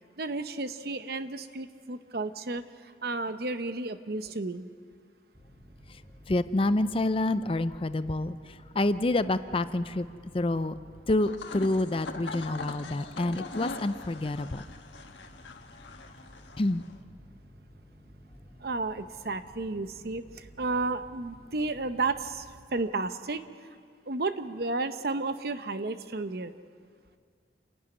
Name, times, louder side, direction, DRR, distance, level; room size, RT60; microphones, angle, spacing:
voice 1, 0.2-2.6 3.0-4.7 18.6-22.5 22.7-23.4 24.1-26.5, right 3 dB, 60° right, 11 dB, 0.8 m, -32 dB
sound 1, 5.3-22.6, equal, 20° right, 3.1 m, -54 dB
voice 2, 6.3-10.1 10.3-10.8 11.1-14.6 16.6-16.8, left 2 dB, 30° left, 13 dB, 0.5 m, -28 dB
sound 2, 11.1-17.0, left 3 dB, 85° left, 1.4 m, -42 dB
28.0 x 11.0 x 9.6 m, 2.1 s
head